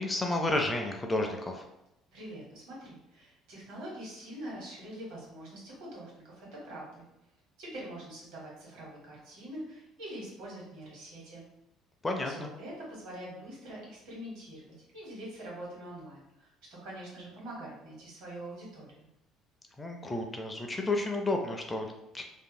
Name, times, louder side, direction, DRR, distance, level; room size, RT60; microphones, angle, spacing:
voice 1, 0.0-1.6 12.0-12.5 19.8-22.2, left 2 dB, 15° left, 3 dB, 0.3 m, -31 dB
voice 2, 2.1-7.0 7.6-11.4 12.2-19.1, right 1 dB, 80° right, -4 dB, 1.3 m, -44 dB
2.9 x 2.6 x 2.2 m, 0.86 s
cardioid pair, 130°, 0 cm